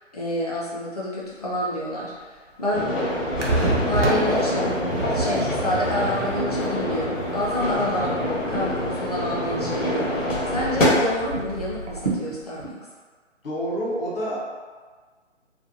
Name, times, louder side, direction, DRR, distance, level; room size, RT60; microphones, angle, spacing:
voice 1, 0.1-2.3 2.6-2.9 3.8-4.8 5.1-8.2 8.5-12.8, left 1 dB, 30° left, -6 dB, 0.5 m, -28 dB
sound 1, 1.2-12.7, right 3 dB, 35° right, 0.4 m, -40 dB
sound 2, 2.7-10.8, left 1 dB, 90° left, 1.0 m, -26 dB
sound 3, 2.8-12.1, right 2 dB, 70° right, 0.6 m, -30 dB
voice 2, 7.7-8.1 13.4-14.4, equal, 50° left, -6 dB, 0.9 m, -28 dB
2.5 x 2.2 x 2.7 m, 1.5 s
figure-of-eight pair, 150°, 37 cm